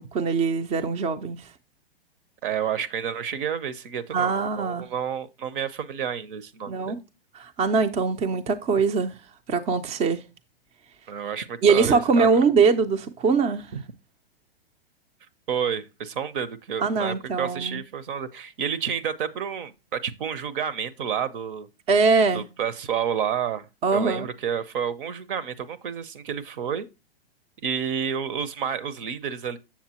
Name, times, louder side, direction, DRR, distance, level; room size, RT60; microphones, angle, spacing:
voice 1, 0.0-1.5 4.1-4.9 6.7-7.0 7.3-9.1 9.5-10.2 11.6-13.7 16.8-17.8 21.9-22.4 23.8-24.3, right 5 dB, 20° right, 0.5 m, -22 dB
voice 2, 2.4-7.0 11.1-12.4 13.7-13.8 15.5-21.7 22.3-26.9 27.6-29.6, right 8 dB, 60° right, 0.8 m, -30 dB
7.3 x 7.1 x 2.9 m
hypercardioid pair, 130°, 30 cm